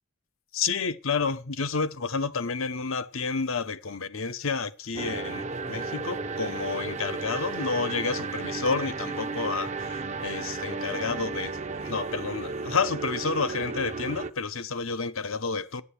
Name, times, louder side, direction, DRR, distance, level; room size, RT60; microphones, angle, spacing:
voice 1, 0.5-11.6 11.8-15.8, left 4 dB, 65° left, 0.8 m, -30 dB
sound 1, 4.9-14.3, right 4 dB, 35° right, 0.7 m, -34 dB
9.6 x 8.8 x 8.4 m
head